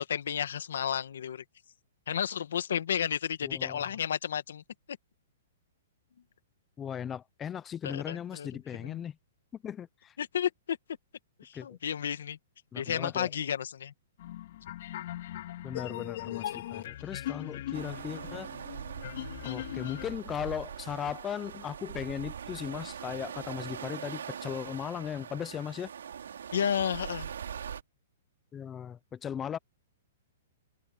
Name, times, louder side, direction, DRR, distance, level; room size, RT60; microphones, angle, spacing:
voice 1, 0.0-1.4 2.1-5.0 7.8-9.0 10.2-10.8 11.4-12.4 12.8-13.9 16.5-16.6 26.5-27.3, left 8 dB, 75° left, 1.7 m, -32 dB
voice 2, 3.4-3.9 6.8-9.2 9.6-10.1 11.5-11.8 12.7-13.3 15.6-18.5 19.4-25.9 28.5-29.6, left 9 dB, 15° left, 0.6 m, -37 dB
sound 1, 14.2-20.1, left 13 dB, 55° left, 2.6 m, -39 dB
sound 2, 17.7-27.8, right 8 dB, 90° right, 3.1 m, -42 dB
hypercardioid pair, 160°, 0 cm